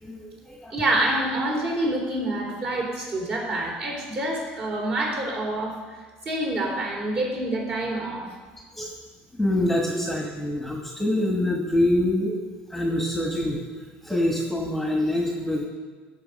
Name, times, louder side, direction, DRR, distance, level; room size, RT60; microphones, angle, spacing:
voice 1, 0.0-0.7 8.8-8.9 9.4-12.4 12.7-13.6 14.0-15.7, left 1 dB, 5° left, 0 dB, 1.4 m, -25 dB
voice 2, 0.7-5.8 6.3-8.3, right 1 dB, 40° right, -1 dB, 3.6 m, -27 dB
16.0 x 6.9 x 5.3 m, 1.4 s
cardioid pair, 145°, 4 cm